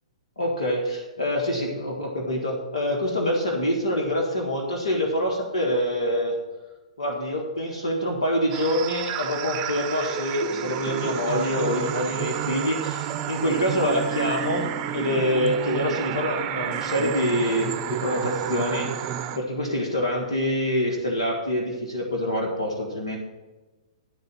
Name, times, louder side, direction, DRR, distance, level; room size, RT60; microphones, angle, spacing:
voice 1, 0.4-6.4 7.0-23.2, left 1 dB, 85° left, -1 dB, 1.6 m, -26 dB
sound 1, 8.5-19.4, right 10 dB, 35° right, 0.7 m, -30 dB
12.0 x 4.1 x 7.5 m, 1.2 s
hypercardioid pair, 125°, 3 cm